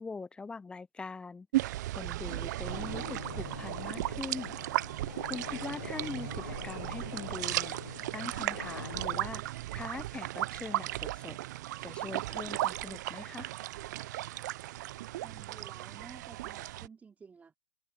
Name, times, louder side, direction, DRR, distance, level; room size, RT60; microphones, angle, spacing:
voice 1, 0.0-4.6 4.9-9.4 9.7-11.4 11.8-13.5, left 4 dB, 10° left, 0.5 m, -42 dB
sound 1, 1.5-16.9, right 16 dB, 55° right, 0.7 m, -36 dB
sound 2, 2.7-9.2, left 7 dB, 85° left, 0.6 m, -45 dB
voice 2, 15.2-17.6, right 5 dB, 15° right, 3.1 m, -53 dB
open air
hypercardioid pair, 115°, 11 cm